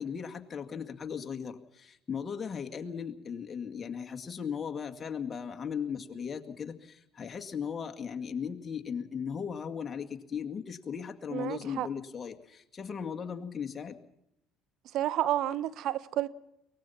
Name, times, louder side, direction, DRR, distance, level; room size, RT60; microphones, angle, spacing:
voice 1, 0.0-14.0, left 7 dB, 35° left, 2.2 m, -37 dB
voice 2, 11.3-11.9 14.9-16.3, right 12 dB, 65° right, 0.9 m, -30 dB
23.0 x 19.5 x 5.8 m
supercardioid pair, 75°, 0 cm